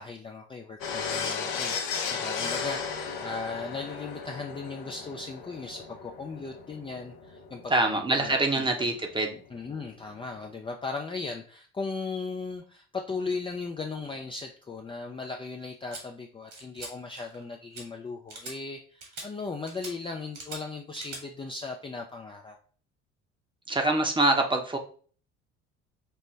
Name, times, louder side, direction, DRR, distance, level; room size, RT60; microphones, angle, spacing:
voice 1, 0.0-8.7 9.5-22.6, left 4 dB, 15° left, 2 dB, 0.4 m, -37 dB
sound 1, 0.8-9.9 10.2-10.4, left 5 dB, 65° left, 0.8 m, -35 dB
voice 2, 7.7-9.4 23.7-24.8, right 2 dB, 15° right, 3 dB, 0.8 m, -25 dB
sound 2, 15.9-16.0 16.5-16.9 17.2-17.4 17.7-17.8 18.3-18.5 19.0-19.3 19.7-19.9 20.3-20.6 20.9-21.2, right 3 dB, 60° right, 1.7 m, -41 dB
5.5 x 2.1 x 3.2 m, 0.43 s
hypercardioid pair, 60°, 35 cm